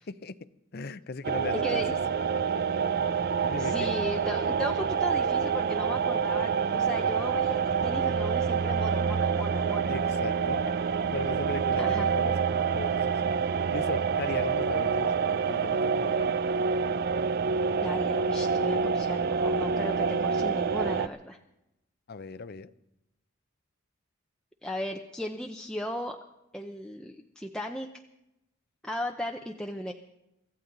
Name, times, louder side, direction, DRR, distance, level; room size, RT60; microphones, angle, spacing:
voice 1, 0.1-0.4 0.7-2.0 3.4-3.9 9.9-10.6 11.1-13.3 13.7-16.4 22.1-22.7, left 4 dB, 50° left, 15 dB, 0.6 m, -38 dB
sound 1, 1.2-21.1, right 6 dB, 50° right, 0.5 m, -27 dB
voice 2, 1.6-1.9 3.6-9.9 10.7-10.8 11.8-12.1 17.8-21.4 24.6-26.2 26.5-27.9 28.8-29.9, left 1 dB, 5° left, 2 dB, 0.6 m, -36 dB
24.5 x 15.0 x 3.9 m, 0.90 s
head